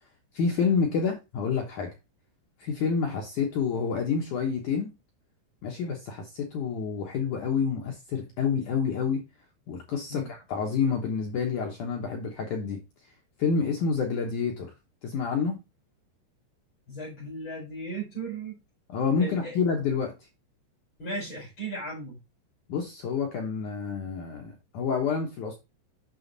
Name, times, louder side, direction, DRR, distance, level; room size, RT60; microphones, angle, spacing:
voice 1, 0.3-1.9 2.6-4.9 5.6-9.2 9.7-12.8 13.4-14.7 15.0-15.6 18.9-20.1 22.7-25.6, left 5 dB, 70° left, 1.9 m, -28 dB
voice 2, 16.9-18.6 19.2-19.5 21.0-22.2, right 2 dB, 30° left, 5.0 m, -36 dB
7.7 x 6.2 x 4.0 m
omnidirectional pair, 5.1 m